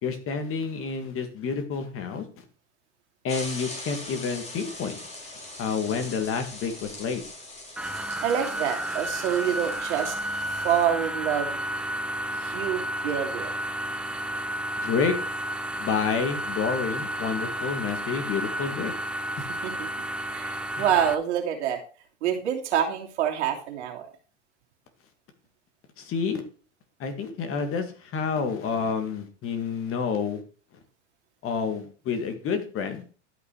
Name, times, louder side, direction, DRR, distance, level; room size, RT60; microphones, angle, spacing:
voice 1, 0.0-2.3 3.2-5.0 5.6-7.2 14.8-15.1 15.8-18.9 20.8-20.9 26.0-26.4 27.0-30.4 31.4-33.0, left 6 dB, 35° left, 8 dB, 2.2 m, -29 dB
sound 1, 3.3-10.8, left 2 dB, 20° left, 3.5 m, -41 dB
sound 2, 7.8-21.1, right 1 dB, 5° right, 0.7 m, -32 dB
voice 2, 8.2-10.1 10.6-11.6 12.3-13.5 19.6-19.9 20.3-21.8 22.2-24.0, right 9 dB, 70° right, 1 dB, 2.8 m, -27 dB
12.0 x 5.8 x 4.7 m, 0.38 s
hypercardioid pair, 105°, 36 cm